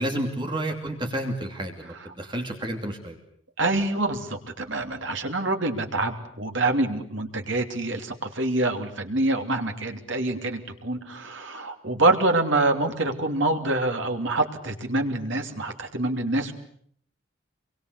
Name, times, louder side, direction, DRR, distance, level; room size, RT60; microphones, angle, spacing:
voice 1, 0.0-3.2, right 1 dB, 25° right, 3 dB, 2.8 m, -30 dB
voice 2, 3.6-16.5, right 2 dB, 65° right, 5 dB, 3.0 m, -26 dB
27.0 x 23.0 x 8.2 m, 0.64 s
head